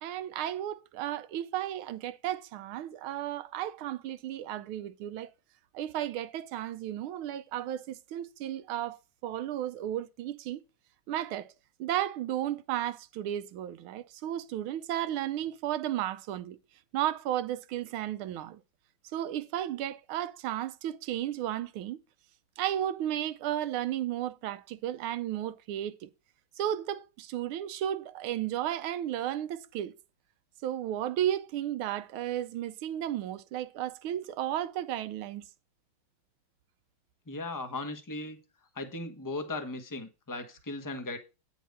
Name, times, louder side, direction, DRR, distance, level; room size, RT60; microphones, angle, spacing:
voice 1, 0.0-5.3 5.7-10.6 11.1-11.5 11.8-16.6 16.9-18.6 19.1-22.0 22.6-26.1 26.6-29.9 30.6-35.4, right 12 dB, 90° right, 1.6 m, -34 dB
voice 2, 37.3-38.4 38.7-41.2, left 2 dB, 15° left, 0.7 m, -37 dB
9.3 x 4.6 x 5.2 m
omnidirectional pair, 2.2 m